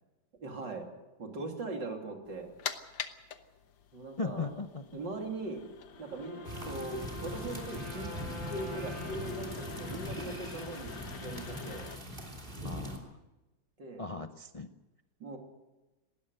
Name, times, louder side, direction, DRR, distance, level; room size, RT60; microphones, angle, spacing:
voice 1, 0.4-0.9 1.2-2.5 3.9-4.5 4.9-5.6 6.0-8.1 8.5-11.9 13.8-14.0 15.2-15.4, right 2 dB, 70° right, 2 dB, 3.7 m, -40 dB
sound 1, 2.3-12.0, left 8 dB, 75° left, 1.9 m, -46 dB
voice 2, 4.2-5.0 12.6-13.2 14.0-14.7, left 3 dB, 60° left, 7 dB, 0.3 m, -38 dB
Wind instrument woodwind instrument, 6.0-10.9, left 1 dB, 90° right, 7.2 m, -47 dB
sound 2, 6.4-13.0, equal, 25° right, 3.3 m, -41 dB
19.5 x 17.0 x 7.9 m, 1.1 s
omnidirectional pair, 2.0 m